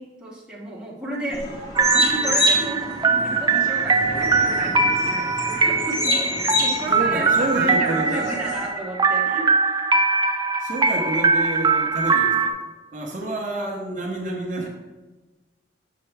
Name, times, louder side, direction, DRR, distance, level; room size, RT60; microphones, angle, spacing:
voice 1, 0.0-1.4 1.9-9.5, right 1 dB, 5° right, -6 dB, 1.2 m, -32 dB
sound 1, 1.3-8.7, equal, 25° left, 1.1 m, -27 dB
sound 2, 1.7-12.5, right 4 dB, 25° right, 0.3 m, -21 dB
Explosion, 4.0-5.9, equal, 40° left, 0.7 m, -37 dB
voice 2, 6.9-8.2 10.6-12.6 12.9-14.7, right 1 dB, 45° right, 0 dB, 0.9 m, -28 dB
6.7 x 5.7 x 3.4 m, 1.2 s
head